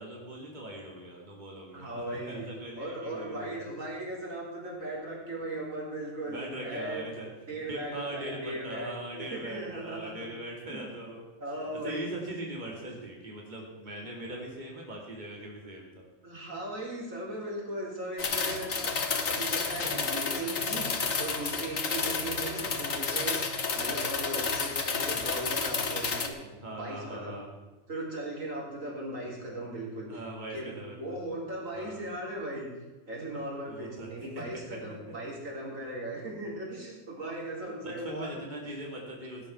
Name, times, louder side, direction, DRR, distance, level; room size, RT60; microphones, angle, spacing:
voice 1, 0.0-3.7 6.2-7.3 7.6-11.3 11.7-16.0 24.4-24.5 25.1-25.3 26.6-27.5 30.1-31.2 31.7-32.0 33.6-34.8 37.6-39.5, right 1 dB, 35° right, -1 dB, 2.7 m, -41 dB
voice 2, 1.7-2.5 2.8-10.1 10.7-11.0 11.4-12.1 13.9-14.0 16.2-23.4 23.7-27.4 27.9-30.2 30.5-32.7 33.1-38.3, right 1 dB, 85° right, -4 dB, 4.4 m, -38 dB
sound 1, 18.2-26.3, left 5 dB, 80° left, 1.8 m, -31 dB
17.0 x 9.8 x 5.9 m, 1.2 s
omnidirectional pair, 1.3 m